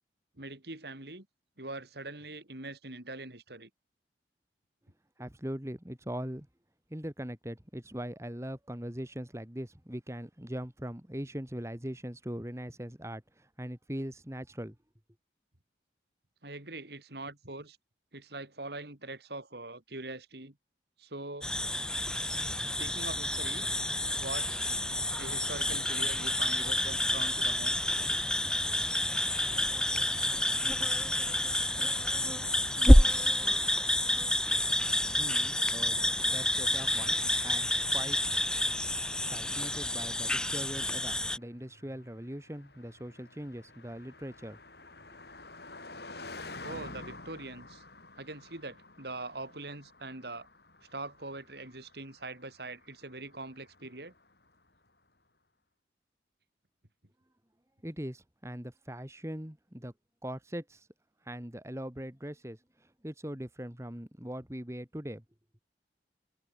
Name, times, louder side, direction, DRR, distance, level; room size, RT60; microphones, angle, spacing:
voice 1, 0.4-1.3 1.6-3.7 16.4-17.8 18.1-20.6 21.0-21.5 22.8-23.7 24.2-24.8 25.2-27.8 36.8-37.1 46.6-47.8 48.2-50.5 50.9-54.1, right 2 dB, 65° right, 3.5 m, -43 dB
voice 2, 5.2-6.5 6.9-14.8 35.2-38.2 39.3-44.6 57.8-59.9 60.2-60.9 61.2-65.2, equal, 15° right, 2.1 m, -41 dB
sound 1, 21.4-41.4, left 1 dB, 5° left, 0.8 m, -28 dB
Car passing by, 38.2-54.7, left 2 dB, 65° left, 7.2 m, -50 dB
head